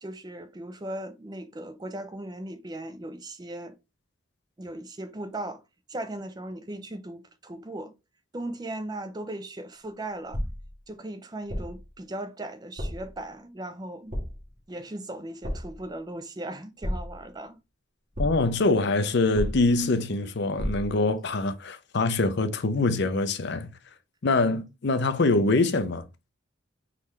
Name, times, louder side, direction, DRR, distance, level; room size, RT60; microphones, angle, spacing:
voice 1, 0.0-3.8 4.6-5.6 5.9-7.9 8.3-10.4 10.9-14.2 14.7-17.6, right 1 dB, 20° right, 0.4 m, -38 dB
sound 1, 10.3-10.8 11.5-11.9 12.8-13.2 14.1-14.6 15.4-15.9 16.8-17.4 18.1-18.6 19.3-19.9 20.6-21.0, equal, 35° right, 1.6 m, -32 dB
voice 2, 18.2-23.7 24.2-26.0, left 3 dB, 55° left, 0.5 m, -24 dB
4.1 x 3.9 x 3.2 m
head